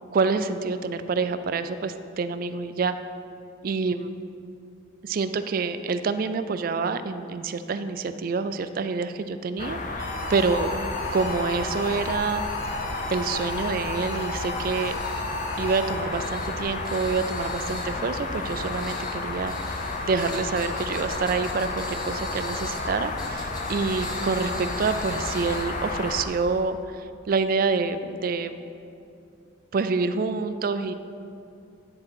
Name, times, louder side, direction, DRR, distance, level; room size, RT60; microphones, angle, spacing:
voice 1, 0.1-3.0 3.6-4.1 5.0-10.8 11.1-12.4 13.1-15.0 15.6-19.8 20.1-28.5 29.7-30.9, right 4 dB, 45° right, 11 dB, 0.3 m, -27 dB
sound 1, 9.6-26.2, left 3 dB, 40° left, 0.5 m, -32 dB
sound 2, 10.0-16.3, left 2 dB, 85° left, 1.4 m, -35 dB
sound 3, 11.7-26.6, left 1 dB, 20° left, 0.9 m, -44 dB
9.9 x 3.8 x 6.0 m, 2.6 s
head